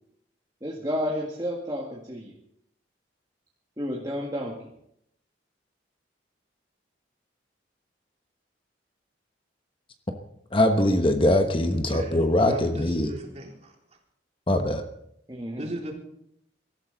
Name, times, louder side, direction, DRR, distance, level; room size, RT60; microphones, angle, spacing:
voice 1, 0.6-2.4 3.8-4.6 15.3-15.7, equal, 20° right, 1.9 m, -31 dB
voice 2, 10.5-13.1 14.5-14.8, left 1 dB, 30° left, 1.1 m, -22 dB
voice 3, 11.9-13.7 15.5-15.9, right 1 dB, 35° right, 3.7 m, -37 dB
23.5 x 13.5 x 4.0 m
head